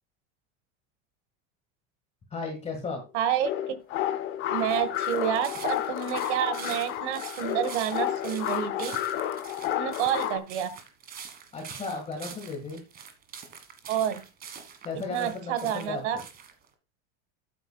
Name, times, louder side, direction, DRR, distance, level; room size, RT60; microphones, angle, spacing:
voice 1, 2.3-3.0 11.5-12.8 14.8-16.0, left 4 dB, 20° left, 3 dB, 1.7 m, -35 dB
voice 2, 3.1-3.5 4.5-9.0 9.7-10.7 13.9-14.2 15.1-16.2, right 10 dB, 80° right, 13 dB, 1.6 m, -29 dB
sound 1, 3.4-10.4, left 11 dB, 35° left, 0.9 m, -31 dB
sound 2, 4.5-16.7, right 7 dB, 25° right, 1.6 m, -45 dB
11.5 x 8.8 x 2.3 m, 0.30 s
supercardioid pair, 155°, 34 cm